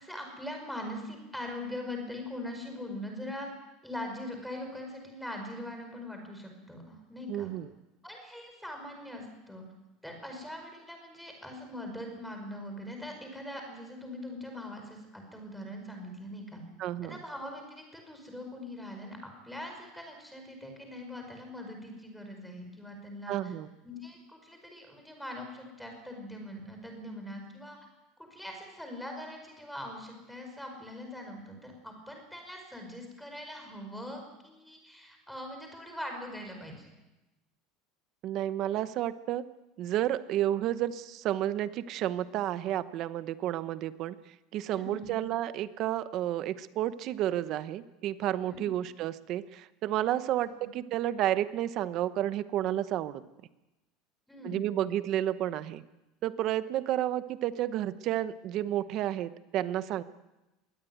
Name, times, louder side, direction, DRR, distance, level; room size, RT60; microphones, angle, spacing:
voice 1, 0.0-3.5 3.8-7.5 8.0-9.6 10.0-16.6 17.0-23.5 23.8-27.8 28.3-36.9 44.7-45.1 48.4-48.7 50.4-50.5 54.3-54.7, left 1 dB, ahead, 3 dB, 5.1 m, -42 dB
voice 2, 7.3-7.7 16.8-17.2 23.3-23.7 38.2-39.4 39.8-44.1 44.5-53.2 54.4-55.8 56.2-60.0, right 12 dB, 40° right, 13 dB, 1.0 m, -31 dB
22.0 x 17.5 x 9.3 m, 1.0 s
cardioid pair, 160°, 0 cm